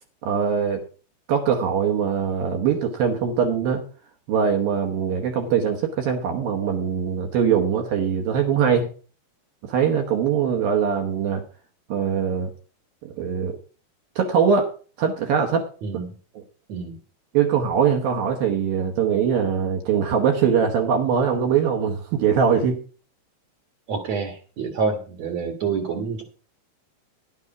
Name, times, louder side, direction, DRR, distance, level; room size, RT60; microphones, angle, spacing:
voice 1, 0.2-0.8 1.3-3.8 4.3-8.9 9.6-11.4 11.9-12.5 13.0-13.6 14.2-14.7 15.0-15.7 16.3-16.4 17.3-22.8, right 7 dB, 70° right, 3 dB, 2.4 m, -22 dB
voice 2, 15.8-16.1 16.7-16.9 23.9-26.2, right 5 dB, 90° right, 4 dB, 1.5 m, -27 dB
11.0 x 9.6 x 4.8 m, 0.38 s
omnidirectional pair, 5.4 m